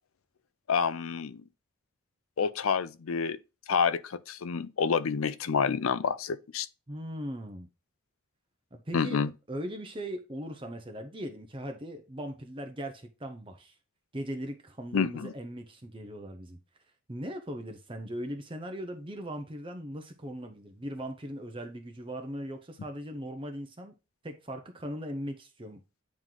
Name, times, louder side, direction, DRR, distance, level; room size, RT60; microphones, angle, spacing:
voice 1, 0.7-1.4 2.4-3.4 3.7-6.7 8.9-9.3 14.9-15.3, left 6 dB, 90° left, 0.5 m, -28 dB
voice 2, 6.9-7.7 8.7-9.2 9.5-13.7 14.1-16.6 17.1-23.9 24.2-25.8, equal, 25° right, 0.7 m, -39 dB
9.0 x 3.1 x 3.8 m
head